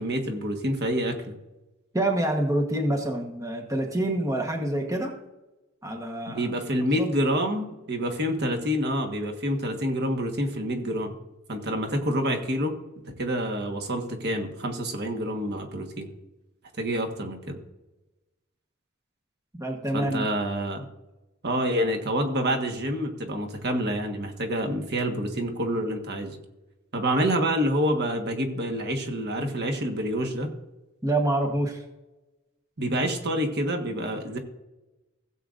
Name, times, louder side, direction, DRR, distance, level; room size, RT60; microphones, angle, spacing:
voice 1, 0.0-1.4 6.3-11.2 11.5-12.8 13.0-16.1 16.8-17.6 19.9-20.8 21.4-26.4 26.9-30.5 32.8-34.4, equal, 55° right, 3 dB, 1.5 m, -27 dB
voice 2, 1.9-5.1 5.8-6.5 6.7-7.1 19.5-20.3 31.0-31.8, right 1 dB, 15° right, 2 dB, 1.2 m, -27 dB
16.5 x 7.9 x 2.6 m, 1.0 s
head